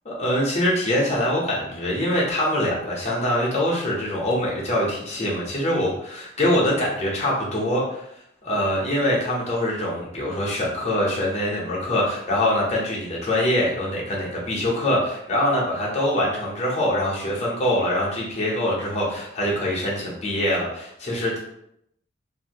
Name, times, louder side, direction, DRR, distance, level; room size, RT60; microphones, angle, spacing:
voice 1, 0.1-8.0 8.4-21.4, left 1 dB, 35° left, -4 dB, 0.8 m, -24 dB
2.7 x 2.6 x 2.9 m, 0.77 s
head